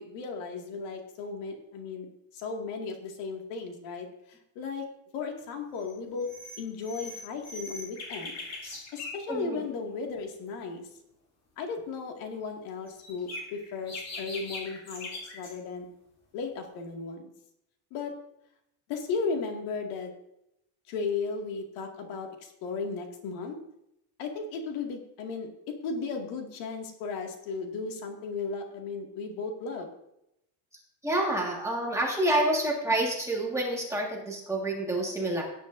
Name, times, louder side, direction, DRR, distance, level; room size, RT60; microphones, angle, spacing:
voice 1, 0.0-2.1 2.4-4.1 4.6-4.8 5.1-6.3 6.6-8.4 8.9-10.8 11.6-15.9 16.3-17.3 17.9-18.1 18.9-20.1 20.9-23.6 24.2-29.9, left 4 dB, 75° left, 2 dB, 2.2 m, -35 dB
sound 1, 5.8-5.9 6.2-9.2 12.9-15.6, left 2 dB, 30° left, 2.4 m, -41 dB
voice 2, 9.3-9.6 31.0-35.4, right 1 dB, 5° right, -3 dB, 1.7 m, -28 dB
17.0 x 9.2 x 2.6 m, 0.81 s
cardioid pair, 180°, 48 cm